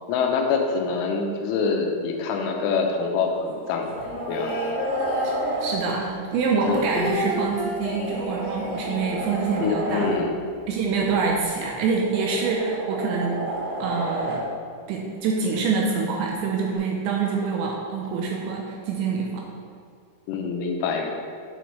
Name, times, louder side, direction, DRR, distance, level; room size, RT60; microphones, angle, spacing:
voice 1, 0.1-3.9 4.3-4.5 6.7-6.8 9.6-10.4 20.3-21.1, left 5 dB, 85° left, 2 dB, 3.1 m, -25 dB
sound 1, 2.9-3.0 3.5-5.8 7.4-10.2 11.6-14.5 16.7-16.8, right 2 dB, 65° right, 3.1 m, -31 dB
sound 2, 3.9-6.0 6.3-10.3 10.6-10.7 10.9-11.4, left 2 dB, 70° left, 2.7 m, -32 dB
voice 2, 5.6-10.2 10.7-13.4 13.8-14.4 14.9-19.4, right 4 dB, 80° right, -1 dB, 2.7 m, -26 dB
9.1 x 6.9 x 3.2 m, 2.2 s
omnidirectional pair, 5.7 m